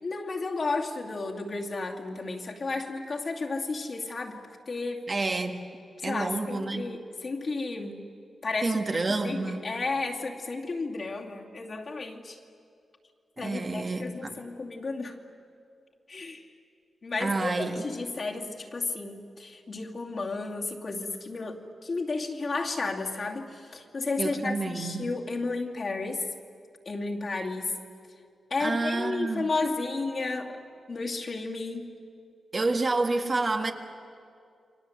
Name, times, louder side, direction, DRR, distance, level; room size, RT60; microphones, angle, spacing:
voice 1, 0.0-4.4 4.7-5.0 6.0-8.0 8.4-12.4 13.4-15.2 16.1-16.4 17.0-26.2 26.8-27.7 28.5-30.6 30.9-31.9, left 3 dB, 45° left, 0 dB, 2.6 m, -33 dB
voice 2, 5.1-5.6 6.0-6.9 8.6-9.7 13.4-14.4 17.2-17.8 24.2-25.1 28.6-29.5 32.5-33.7, right 3 dB, 35° right, 5 dB, 1.7 m, -29 dB
29.0 x 24.0 x 8.1 m, 2.4 s
wide cardioid pair, 120°, 0 cm